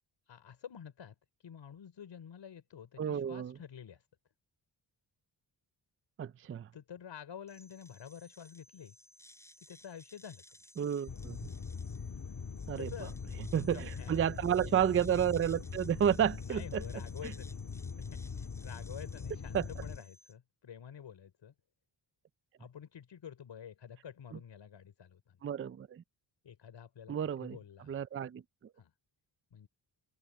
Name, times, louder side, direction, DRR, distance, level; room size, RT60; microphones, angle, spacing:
voice 1, 0.3-1.2 1.4-4.0 6.7-8.9 9.7-10.6 12.2-12.3 12.8-13.2 13.7-14.3 16.4-21.5 22.6-25.4 26.4-27.1 27.4-28.1 28.8-28.9 29.5-29.7, left 8 dB, 70° left, 4.9 m, -49 dB
voice 2, 3.0-3.5 6.2-6.7 10.8-11.4 12.7-12.9 13.5-16.8 19.5-19.6 25.4-26.0 27.1-27.6 27.9-28.4, right 9 dB, 30° right, 0.4 m, -31 dB
sound 1, 7.5-20.3, equal, 5° left, 6.8 m, -59 dB
sound 2, 11.1-20.0, left 5 dB, 40° left, 2.0 m, -42 dB
cardioid pair, 105°, 45 cm